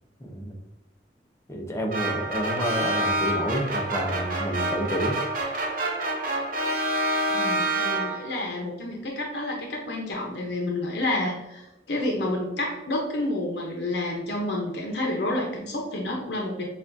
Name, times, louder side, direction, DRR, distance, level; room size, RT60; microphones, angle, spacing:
voice 1, 0.2-0.5 1.5-5.2, equal, 15° left, 1 dB, 0.6 m, -29 dB
sound 1, 1.9-8.4, right 1 dB, 50° right, 0.6 m, -27 dB
voice 2, 7.3-16.6, left 1 dB, 65° left, 0 dB, 0.7 m, -29 dB
6.8 x 2.4 x 2.6 m, 0.98 s
head